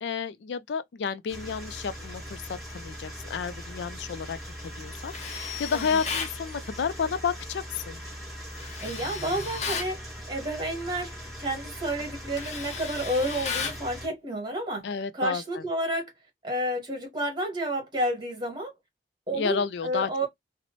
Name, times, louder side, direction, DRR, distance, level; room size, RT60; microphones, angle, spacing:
voice 1, 0.0-4.4 4.6-8.0 14.8-15.6 19.3-20.1, left 6 dB, 75° left, 0.4 m, -31 dB
sound 1, 1.3-14.1, equal, ahead, 1.8 m, -41 dB
Tools, 5.1-6.4 8.5-9.9 11.4-11.6 12.0-13.8, left 5 dB, 40° left, 0.6 m, -34 dB
voice 2, 8.8-16.1 16.4-18.7 19.3-20.3, right 1 dB, 25° right, 1.4 m, -31 dB
4.0 x 2.1 x 2.9 m
head